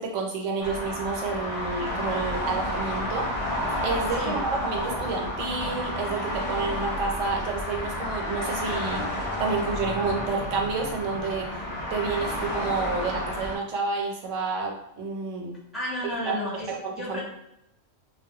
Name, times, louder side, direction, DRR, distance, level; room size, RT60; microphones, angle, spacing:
voice 1, 0.0-3.3 3.8-9.1 9.4-11.5 11.9-15.6 16.3-16.4 16.8-17.2, right 4 dB, 85° right, 1 dB, 0.9 m, -29 dB
sound 1, 0.6-13.6, left 1 dB, 50° left, 0.7 m, -31 dB
voice 2, 15.7-16.7 16.9-17.2, left 1 dB, ahead, -7 dB, 0.6 m, -32 dB
2.2 x 2.1 x 2.6 m, 0.82 s
omnidirectional pair, 1.3 m